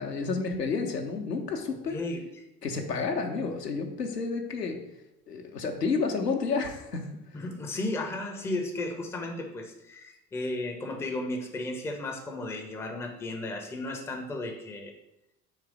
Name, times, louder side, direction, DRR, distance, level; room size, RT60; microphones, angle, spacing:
voice 1, 0.0-2.0 2.6-4.8 5.3-7.1, left 4 dB, 90° left, 3 dB, 0.6 m, -30 dB
voice 2, 1.8-2.2 7.3-14.9, left 2 dB, 5° left, 3 dB, 0.4 m, -34 dB
3.8 x 2.9 x 4.8 m, 0.90 s
figure-of-eight pair, 60°, 47 cm